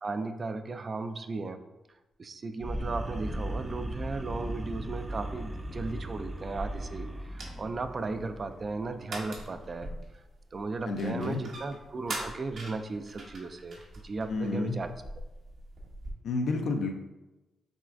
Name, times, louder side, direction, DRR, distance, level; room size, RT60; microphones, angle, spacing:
voice 1, 0.0-1.6 2.2-9.9 10.5-14.9, right 3 dB, 45° right, 8 dB, 0.3 m, -36 dB
sound 1, 2.6-8.9, right 1 dB, 20° right, 0.7 m, -38 dB
sound 2, 2.8-16.1, right 1 dB, 70° right, 1.0 m, -44 dB
voice 2, 10.9-11.4 14.3-14.8 16.2-16.9, left 3 dB, 75° left, 4 dB, 0.5 m, -30 dB
6.1 x 2.3 x 2.6 m, 1.0 s
cardioid pair, 65°, 0 cm